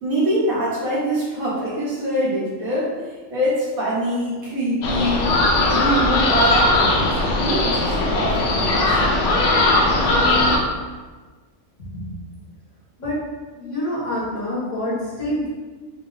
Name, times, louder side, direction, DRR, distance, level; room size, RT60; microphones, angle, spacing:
voice 1, 0.0-2.9 3.3-5.3 5.7-7.1 7.4-9.0, right 1 dB, 85° right, -7 dB, 1.8 m, -24 dB
sound 1, 4.8-10.6, left 2 dB, 65° left, 0.9 m, -19 dB
voice 2, 13.5-15.5, left 1 dB, 80° left, -8 dB, 2.1 m, -26 dB
5.1 x 2.0 x 3.9 m, 1.4 s
omnidirectional pair, 1.4 m